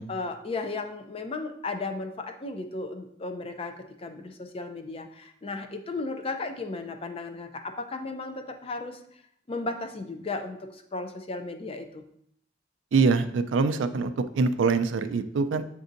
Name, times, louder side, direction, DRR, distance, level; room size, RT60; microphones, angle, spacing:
voice 1, 0.1-9.0 9.5-12.0, left 3 dB, 30° left, 6 dB, 0.4 m, -35 dB
voice 2, 12.9-15.6, right 4 dB, 80° right, 10 dB, 0.4 m, -24 dB
7.9 x 2.6 x 2.5 m, 0.70 s
head